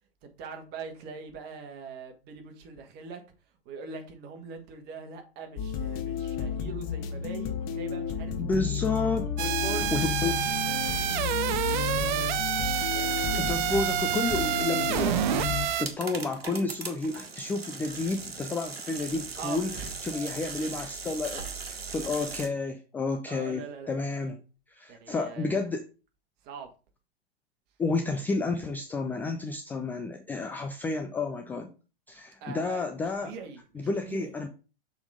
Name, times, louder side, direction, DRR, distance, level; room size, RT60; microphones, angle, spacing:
voice 1, 0.4-3.2 3.6-8.8 9.3-10.5 10.9-12.4 12.9-13.8 19.4-20.0 23.3-23.9 24.9-25.7 26.4-26.7 32.4-34.3, right 5 dB, 35° right, 1.7 m, -42 dB
sound 1, 5.6-15.7, left 8 dB, 35° left, 1.0 m, -32 dB
voice 2, 8.4-9.3 9.7-10.3 13.4-15.5 15.8-19.7 20.0-24.4 24.7-25.8 27.8-31.7 32.1-33.3 33.7-34.5, left 3 dB, 5° left, 0.3 m, -31 dB
sound 2, 9.4-15.9, right 11 dB, 50° right, 0.6 m, -28 dB
sound 3, 10.5-22.5, right 4 dB, 75° right, 1.5 m, -41 dB
6.9 x 4.2 x 4.9 m
figure-of-eight pair, 100°, 31 cm